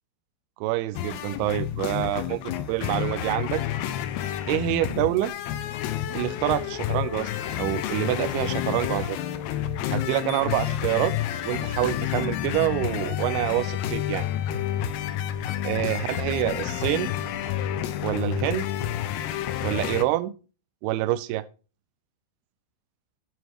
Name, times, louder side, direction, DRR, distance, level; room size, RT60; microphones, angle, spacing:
voice 1, 0.6-3.6 4.5-5.3 6.1-7.3 7.6-9.2 9.9-11.1 11.5-14.3 15.6-17.1 18.0-18.7 19.6-20.3 20.8-21.4, right 15 dB, 85° right, 12 dB, 2.5 m, -26 dB
sound 1, 1.0-20.1, left 11 dB, 85° left, 2.9 m, -29 dB
9.4 x 6.4 x 2.9 m, 0.34 s
omnidirectional pair, 4.6 m